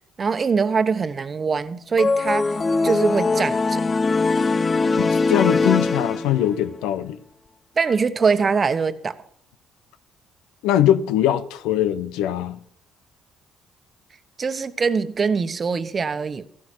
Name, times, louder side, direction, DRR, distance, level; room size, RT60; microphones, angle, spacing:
voice 1, 0.2-2.5 2.8-3.8 7.8-9.1 14.4-16.5, right 5 dB, 40° right, 1.1 m, -22 dB
sound 1, 2.0-6.6, left 3 dB, 35° left, 0.6 m, -21 dB
voice 2, 5.0-7.2 10.6-12.6, left 11 dB, 85° left, 0.8 m, -21 dB
15.0 x 12.5 x 4.5 m
supercardioid pair, 65°, 0 cm